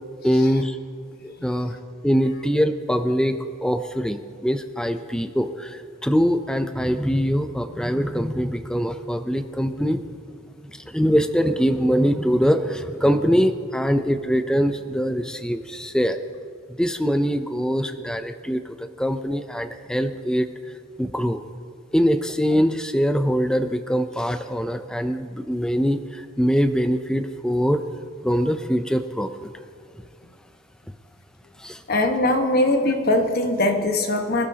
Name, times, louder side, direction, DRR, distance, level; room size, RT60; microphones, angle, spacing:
voice 1, 0.2-0.8 1.2-1.8 2.0-10.0 10.7-16.2 16.8-20.5 21.0-21.4 21.9-27.8 28.2-29.5 31.6-31.8, equal, 5° left, 8 dB, 0.4 m, -23 dB
voice 2, 31.9-34.5, left 1 dB, 45° left, 4 dB, 1.3 m, -21 dB
25.0 x 12.5 x 2.8 m, 2.3 s
head